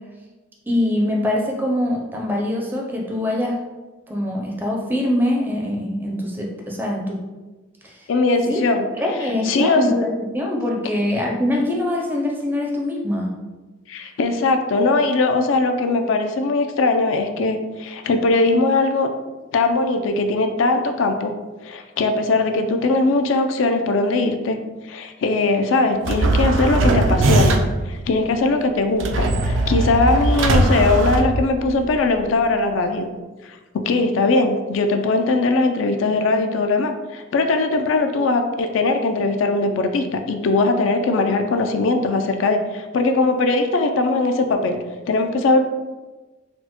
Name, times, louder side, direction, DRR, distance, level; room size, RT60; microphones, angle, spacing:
voice 1, 0.7-3.6 4.1-7.2 7.8-8.1 8.5-8.6 9.0-13.3, left 1 dB, 10° right, -1 dB, 0.4 m, -23 dB
voice 2, 8.1-8.8 9.4-9.8 13.9-19.1 19.5-21.3 21.6-24.6 24.9-27.6 27.9-33.1 33.4-33.6 33.8-44.8 45.1-45.6, left 3 dB, 80° left, 6 dB, 0.3 m, -20 dB
sound 1, 26.0-27.9 29.0-31.9, right 2 dB, 75° right, 0.4 m, -19 dB
4.2 x 2.1 x 2.9 m, 1.2 s
head